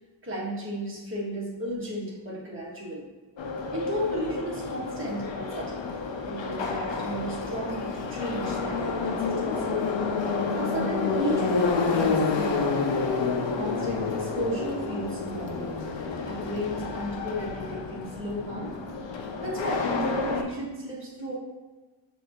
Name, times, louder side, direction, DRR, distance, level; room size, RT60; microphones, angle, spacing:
voice 1, 0.2-3.1 3.7-5.9 6.3-9.8 10.5-12.8 13.5-15.7 16.2-18.8 19.4-21.3, equal, 25° right, -6 dB, 1.5 m, -34 dB
Subway metro underground, 3.4-20.4, left 4 dB, 70° left, 0.6 m, -29 dB
6.2 x 2.7 x 2.9 m, 1.2 s
cardioid pair, 45°, 46 cm